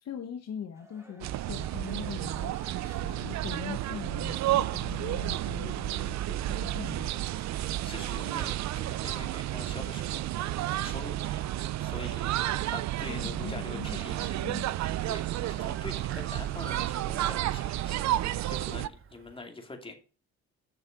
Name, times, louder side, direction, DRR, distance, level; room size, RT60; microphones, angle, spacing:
voice 1, 0.0-7.5 13.1-14.8, left 8 dB, 60° left, 6 dB, 1.1 m, -41 dB
sound 1, 0.7-8.7 9.1-10.4 11.0-16.0, right 1 dB, 10° right, 2.0 m, -58 dB
sound 2, 1.2-18.9, right 14 dB, 65° right, 0.5 m, -31 dB
voice 2, 7.8-11.4 11.7-14.4 15.0-19.9, left 2 dB, 15° left, 3 dB, 2.5 m, -44 dB
Bird, 14.2-19.4, right 8 dB, 45° right, 1.0 m, -48 dB
7.5 x 6.4 x 5.9 m, 0.37 s
cardioid pair, 90°, 30 cm